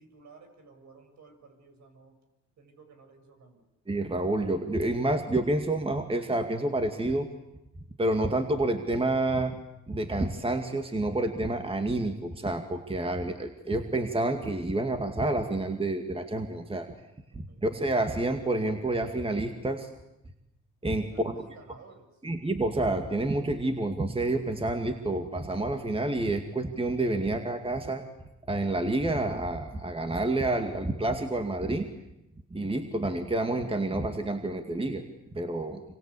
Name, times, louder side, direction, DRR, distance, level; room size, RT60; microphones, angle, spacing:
voice 1, 0.0-2.2 2.6-3.7 17.3-17.6 21.0-22.1, right 4 dB, 65° right, 6 dB, 6.7 m, -54 dB
voice 2, 3.9-7.3 8.0-9.6 9.9-16.9 17.3-19.9 20.8-21.4 22.2-28.0 28.5-31.9 32.5-35.8, right 2 dB, 20° right, 6 dB, 2.3 m, -29 dB
27.0 x 25.0 x 8.5 m, 0.90 s
cardioid pair, 90°, 30 cm